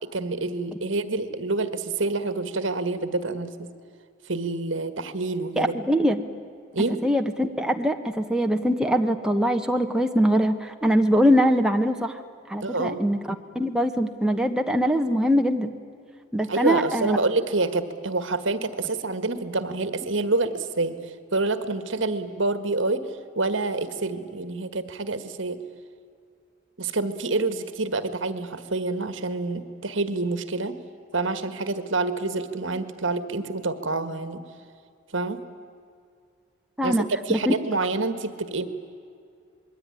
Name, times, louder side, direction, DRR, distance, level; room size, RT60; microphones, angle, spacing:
voice 1, 0.0-3.7 4.3-5.7 6.7-7.0 12.6-13.0 16.5-21.0 21.3-23.1 23.3-25.6 26.8-30.8 31.1-34.4 35.1-35.4 36.8-37.0 37.3-38.6, right 3 dB, 70° right, 12 dB, 1.6 m, -27 dB
voice 2, 5.6-6.2 7.0-12.2 12.5-13.2 13.5-15.7 16.3-17.2 36.8-37.5, equal, 5° right, 4 dB, 1.2 m, -22 dB
27.0 x 21.5 x 9.9 m, 2.3 s
head